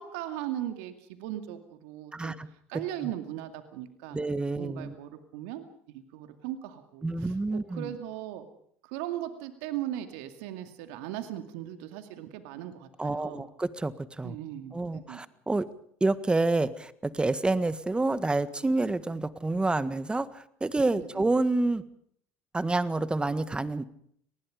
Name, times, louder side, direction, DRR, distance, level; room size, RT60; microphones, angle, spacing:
voice 1, 0.0-2.3 2.7-4.2 4.6-8.5 8.8-13.5 14.2-15.2 21.0-21.3, right 12 dB, 75° right, 8 dB, 2.4 m, -38 dB
voice 2, 2.1-2.5 2.7-3.1 4.1-4.9 7.0-7.9 13.0-14.4 14.7-15.6 16.0-21.8 22.5-23.8, right 2 dB, 15° right, 14 dB, 1.7 m, -28 dB
30.0 x 19.5 x 5.2 m, 0.65 s
hypercardioid pair, 75°, 7 cm